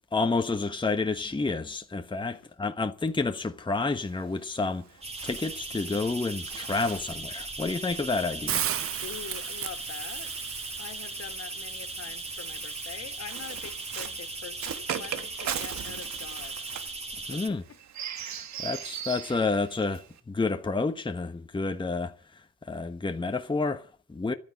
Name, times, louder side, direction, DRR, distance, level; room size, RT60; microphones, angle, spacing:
voice 1, 0.1-4.8 5.2-8.6 17.3-17.6 18.2-22.1 22.7-24.3, left 3 dB, 15° left, 1.3 m, -29 dB
Bird, 3.9-10.5 11.4-20.2, right 9 dB, 65° right, 1.8 m, -40 dB
sound 1, 5.0-17.5, right 2 dB, 20° right, 3.1 m, -38 dB
Hiss, 8.5-14.5, right 11 dB, 50° right, 0.6 m, -37 dB
voice 2, 9.0-16.8 17.1-17.8 19.0-19.2, left 8 dB, 55° left, 2.3 m, -45 dB
13.0 x 9.2 x 9.6 m
cardioid pair, 90°, 30 cm